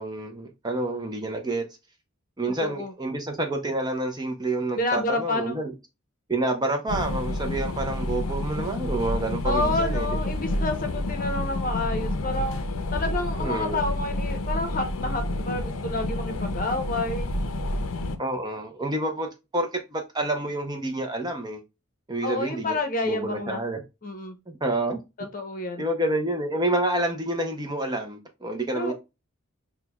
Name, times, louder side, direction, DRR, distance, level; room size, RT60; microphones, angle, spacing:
voice 1, 0.0-1.7 2.4-5.7 6.3-10.1 13.4-13.9 18.2-21.6 22.1-22.8 23.0-23.8 24.5-25.0 25.8-28.9, right 2 dB, 20° right, 0.5 m, -28 dB
voice 2, 2.4-2.9 4.7-5.6 9.4-17.3 22.2-23.6 24.0-24.4 25.2-25.8 28.7-28.9, left 2 dB, 40° left, 0.8 m, -29 dB
sound 1, 6.9-18.2, left 1 dB, 80° left, 0.5 m, -29 dB
5.9 x 2.2 x 2.2 m
head